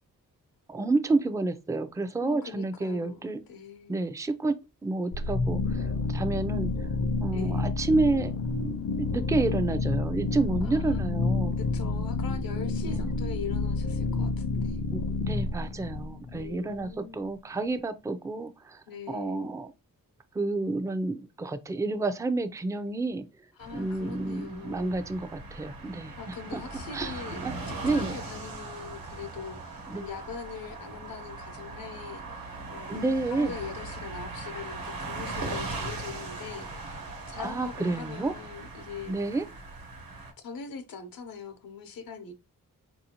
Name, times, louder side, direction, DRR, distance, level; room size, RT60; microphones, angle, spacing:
voice 1, 0.7-3.4 3.9-4.5 4.8-6.7 7.2-8.3 8.6-11.5 12.9-13.0 14.9-15.0 15.3-18.8 19.1-19.7 20.4-23.2 23.7-26.1 26.5-26.6 26.9-27.1 27.4-27.5 27.8-28.1 29.9-30.0 32.9-33.5 37.4-38.3 39.1-39.4, right 3 dB, 10° right, 0.4 m, -29 dB
voice 2, 2.2-4.0 7.3-7.8 10.6-11.0 11.6-14.8 16.3-17.3 18.9-19.5 23.5-25.0 26.2-27.4 27.7-39.4 40.4-42.3, left 6 dB, 85° left, 0.8 m, -42 dB
sound 1, 5.1-16.9, left 3 dB, 45° left, 0.5 m, -29 dB
sound 2, 23.6-40.3, right 3 dB, 90° right, 1.2 m, -39 dB
4.2 x 2.7 x 2.8 m
cardioid pair, 75°, 34 cm